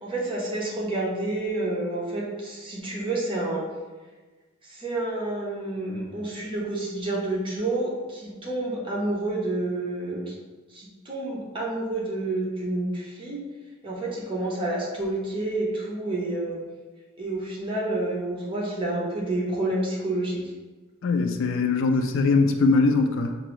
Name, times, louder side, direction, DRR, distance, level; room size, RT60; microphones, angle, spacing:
voice 1, 0.0-3.7 4.6-10.3 10.7-13.4 13.8-16.6 17.2-20.4, right 2 dB, 25° right, -4 dB, 0.9 m, -29 dB
voice 2, 21.0-23.4, left 3 dB, 60° left, 6 dB, 0.3 m, -21 dB
4.5 x 2.6 x 3.1 m, 1.3 s
head